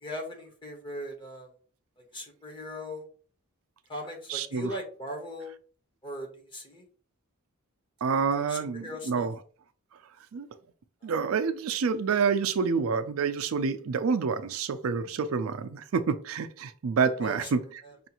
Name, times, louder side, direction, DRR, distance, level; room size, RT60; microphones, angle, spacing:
voice 1, 0.0-1.5 2.1-3.1 3.9-5.5 6.0-6.8 8.5-9.3 11.0-11.1 17.2-17.4 17.8-17.9, equal, 25° left, 1.1 m, -39 dB
voice 2, 4.3-4.7 8.0-9.4 10.3-10.5 11.0-17.6, right 5 dB, 75° right, 0.4 m, -28 dB
5.4 x 2.5 x 2.9 m
head